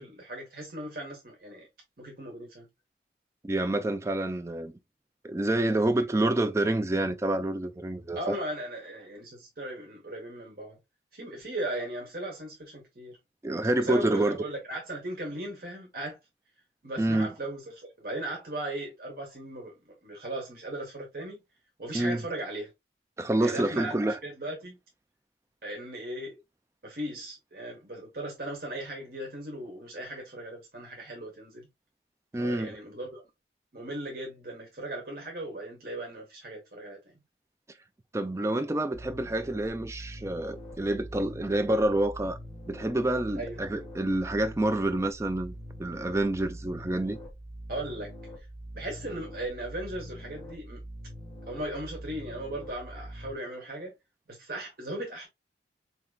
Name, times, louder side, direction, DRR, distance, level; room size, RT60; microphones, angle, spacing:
voice 1, 0.0-1.7 2.0-2.7 8.1-10.8 11.1-13.2 13.8-16.2 16.8-21.4 21.8-22.7 23.4-24.8 25.6-26.4 26.8-31.7 32.4-33.2 33.7-37.1 43.4-43.6 47.7-48.1 48.7-50.8 51.5-53.9 54.3-55.3, right 1 dB, 55° right, 1.2 m, -37 dB
voice 2, 3.4-4.7 5.2-8.4 13.4-14.4 17.0-17.3 21.9-22.2 23.2-24.2 32.3-32.8 38.1-42.4 42.7-45.5 45.8-47.2, right 1 dB, 15° right, 0.4 m, -28 dB
sound 1, 38.9-53.3, equal, 10° left, 1.3 m, -44 dB
4.4 x 2.9 x 2.2 m
head